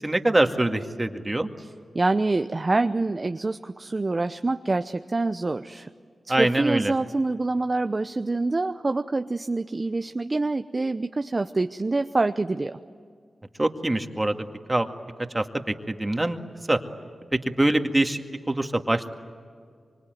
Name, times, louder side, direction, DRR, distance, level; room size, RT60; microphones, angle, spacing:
voice 1, 0.0-1.5 6.3-6.9 13.6-14.3 14.7-14.9 15.3-15.4 15.9-16.4 16.7-16.8 17.3-19.1, right 1 dB, 25° right, 5 dB, 2.1 m, -24 dB
voice 2, 1.9-5.9 6.3-12.8, right 3 dB, 40° right, 8 dB, 0.8 m, -26 dB
25.0 x 25.0 x 9.4 m, 2.1 s
cardioid pair, 40°, 0 cm